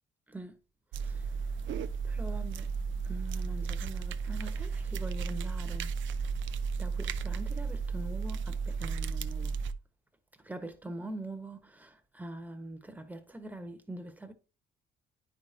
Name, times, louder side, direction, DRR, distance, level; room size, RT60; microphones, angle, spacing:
voice 1, 0.3-0.6 1.0-1.8 2.0-2.7 3.0-6.3 6.8-9.6 10.4-14.3, right 1 dB, 10° right, 1.2 m, -44 dB
sound 1, 0.9-9.7, right 5 dB, 70° right, 0.5 m, -34 dB
9.3 x 5.1 x 2.8 m
cardioid pair, 90°, 20 cm